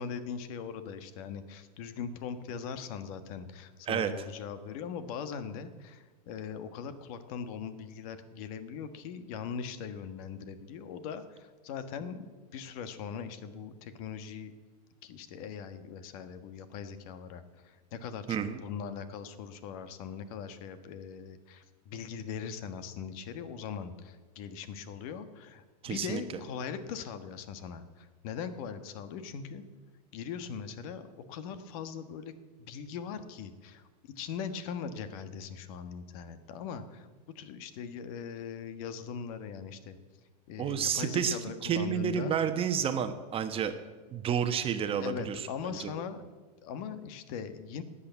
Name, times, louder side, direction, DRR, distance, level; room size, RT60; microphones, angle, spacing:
voice 1, 0.0-12.3 12.5-14.5 15.0-29.6 30.1-32.3 32.6-33.8 34.2-37.1 37.3-40.0 40.5-42.4 45.0-46.2 46.6-47.8, left 7 dB, 60° left, 11 dB, 1.4 m, -40 dB
voice 2, 18.3-18.6 25.8-26.2 40.6-43.7 44.1-45.9, right 8 dB, 25° right, 8 dB, 1.1 m, -30 dB
13.0 x 8.5 x 9.3 m, 1.3 s
supercardioid pair, 135°, 21 cm